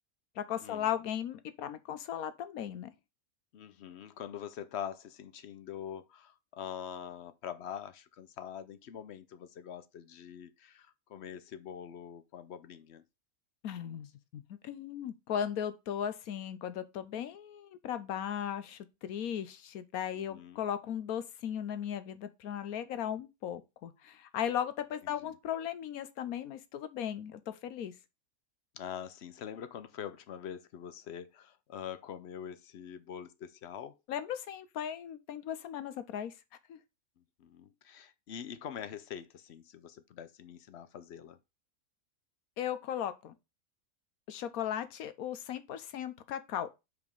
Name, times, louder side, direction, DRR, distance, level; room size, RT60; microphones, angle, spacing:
voice 1, 0.4-2.9 13.6-14.1 14.3-27.9 34.1-36.3 36.7-36.8 42.6-43.3 44.3-46.7, left 9 dB, 85° left, 1.2 m, -37 dB
voice 2, 3.5-13.0 20.1-20.6 25.0-25.3 28.7-34.0 37.4-41.4, left 9 dB, 60° left, 0.8 m, -44 dB
5.1 x 4.9 x 5.3 m
omnidirectional pair, 1.5 m